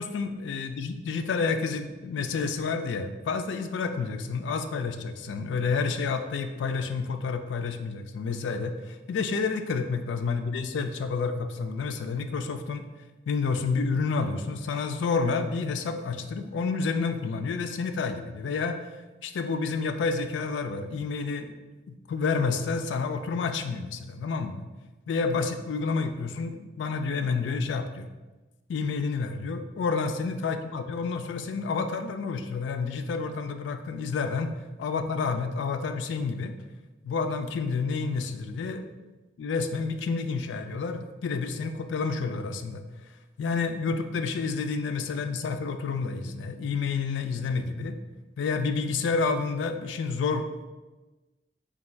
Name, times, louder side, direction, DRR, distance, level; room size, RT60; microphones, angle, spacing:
voice 1, 0.0-12.8 13.3-18.9 19.2-21.5 21.9-24.6 25.1-28.1 28.7-34.5 34.8-36.5 37.0-38.9 39.4-42.8 43.4-48.0 48.4-50.5, left 4 dB, 80° left, 8 dB, 0.3 m, -29 dB
3.5 x 2.3 x 4.2 m, 1.2 s
head